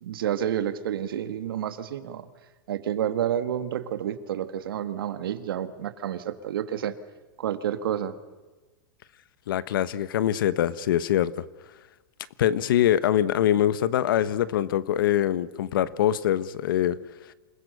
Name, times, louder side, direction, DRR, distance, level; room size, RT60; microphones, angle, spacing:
voice 1, 0.0-2.3 2.7-7.0 7.4-8.2, right 10 dB, 90° right, 11 dB, 1.8 m, -29 dB
voice 2, 9.5-11.4 12.4-17.0, left 11 dB, 75° left, 17 dB, 1.1 m, -23 dB
28.0 x 20.5 x 6.7 m, 1.2 s
supercardioid pair, 160°, 11 cm